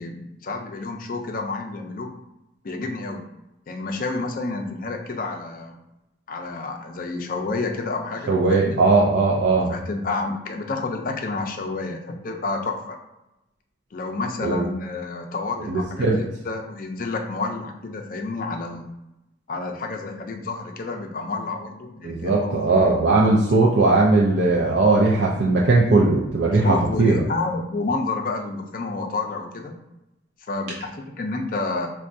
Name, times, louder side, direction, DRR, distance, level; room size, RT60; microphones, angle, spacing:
voice 1, 0.0-2.1 2.6-3.2 3.7-5.8 6.3-8.8 9.7-13.0 13.9-18.9 19.5-23.7 26.6-29.7 30.5-31.9, left 3 dB, 50° left, 4 dB, 0.4 m, -29 dB
voice 2, 8.3-9.7 14.4-14.6 15.7-16.2 22.0-27.2, right 3 dB, 65° right, -3 dB, 0.4 m, -19 dB
4.4 x 2.2 x 2.6 m, 0.92 s
head